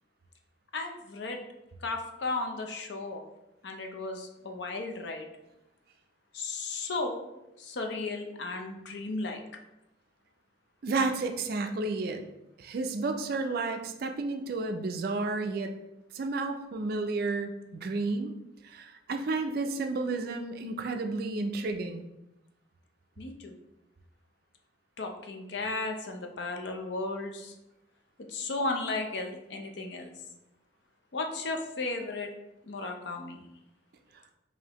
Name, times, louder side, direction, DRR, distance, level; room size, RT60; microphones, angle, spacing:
voice 1, 0.7-1.4 1.8-3.2 3.6-5.3 6.3-7.2 7.6-9.4 23.2-23.5 25.0-27.5 28.3-30.1 31.1-32.3 32.6-33.4, left 3 dB, 60° left, 3 dB, 0.5 m, -35 dB
voice 2, 10.8-12.3 12.6-15.7 16.1-18.3 18.6-22.1, right 3 dB, 50° right, 6 dB, 0.3 m, -31 dB
4.9 x 2.6 x 2.9 m, 0.92 s
head